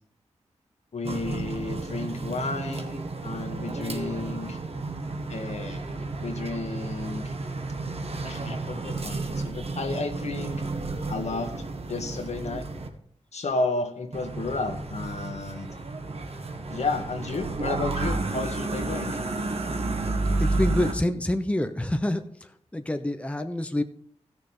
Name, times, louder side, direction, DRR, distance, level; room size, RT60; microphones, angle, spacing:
voice 1, 0.9-4.6 5.3-7.3 8.2-10.6 11.1-11.5 11.9-12.6 13.3-15.7 16.7-19.2, left 3 dB, 65° left, 5 dB, 1.7 m, -32 dB
sound 1, 1.0-12.9 14.1-20.9, right 3 dB, 55° right, 1.7 m, -31 dB
voice 2, 20.4-22.2 22.7-23.8, left 1 dB, 10° left, 8 dB, 0.9 m, -26 dB
14.5 x 6.7 x 5.5 m, 0.65 s
cardioid pair, 55°, 12 cm